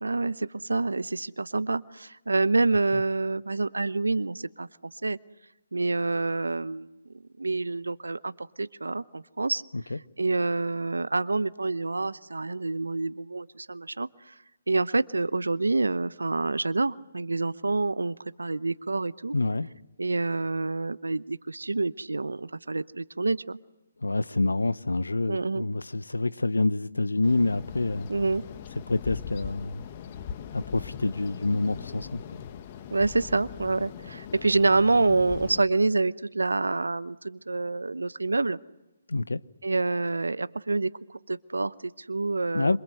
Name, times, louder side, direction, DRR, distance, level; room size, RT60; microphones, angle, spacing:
voice 1, 0.0-4.7 5.0-5.2 5.7-6.9 7.4-9.6 10.2-14.3 14.7-19.3 20.0-23.6 25.3-25.7 28.1-28.4 32.9-38.6 39.6-40.9 41.3-42.8, right 3 dB, 85° right, 0.9 m, -27 dB
voice 2, 19.3-19.7 24.0-28.1 28.9-29.8 30.5-32.4 39.1-39.4 42.5-42.8, left 2 dB, 85° left, 1.0 m, -27 dB
sound 1, 27.2-35.6, left 8 dB, 35° left, 1.5 m, -41 dB
27.0 x 27.0 x 7.9 m
figure-of-eight pair, 145°, 0 cm